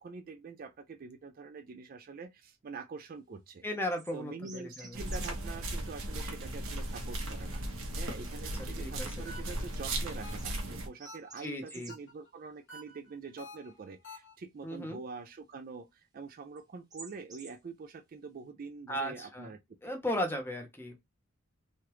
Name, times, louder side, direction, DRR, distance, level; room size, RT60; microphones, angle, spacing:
voice 1, 0.0-3.6 4.1-7.6 7.9-19.6 19.8-19.9, right 4 dB, 45° right, 0.4 m, -45 dB
voice 2, 3.6-5.0 8.8-9.3 11.4-11.9 14.6-15.0 18.9-19.5 19.8-21.1, equal, 10° left, 0.7 m, -36 dB
sound 1, 3.9-4.2 4.4-5.6 5.9-6.3 10.0-10.6 11.0-12.0 13.3-13.4 13.7-13.8 16.6-16.7 16.9-17.6, right 3 dB, 20° right, 0.9 m, -51 dB
sound 2, 4.9-10.9, right 1 dB, 80° right, 0.9 m, -37 dB
sound 3, 8.1-8.5 9.2-9.7 10.2-10.7 11.0-11.5 11.9-12.3 12.7-14.3, left 1 dB, 60° left, 1.1 m, -50 dB
3.1 x 2.4 x 3.0 m
head